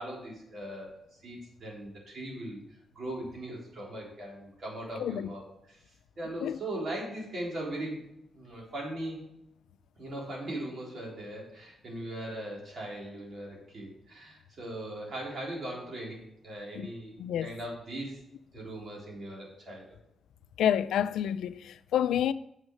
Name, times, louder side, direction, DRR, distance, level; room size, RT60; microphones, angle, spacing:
voice 1, 0.0-2.6 2.9-5.8 6.2-8.0 8.3-9.2 10.0-17.1 17.4-18.2 18.5-19.9, right 1 dB, 55° right, 4.0 m, -39 dB
voice 2, 20.6-22.3, left 10 dB, 90° left, 0.4 m, -28 dB
7.4 x 6.3 x 6.2 m
cardioid pair, 90°, 0 cm